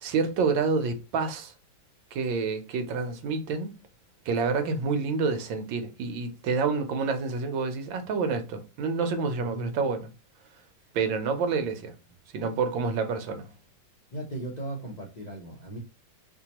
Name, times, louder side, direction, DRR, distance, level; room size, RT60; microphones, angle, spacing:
voice 1, 0.0-1.5 2.1-3.7 4.3-10.1 10.9-11.9 12.3-13.5, right 4 dB, 85° right, 1.5 m, -28 dB
voice 2, 9.4-9.7 14.1-15.8, right 2 dB, 45° left, 0.5 m, -37 dB
4.7 x 2.2 x 2.9 m
omnidirectional pair, 2.0 m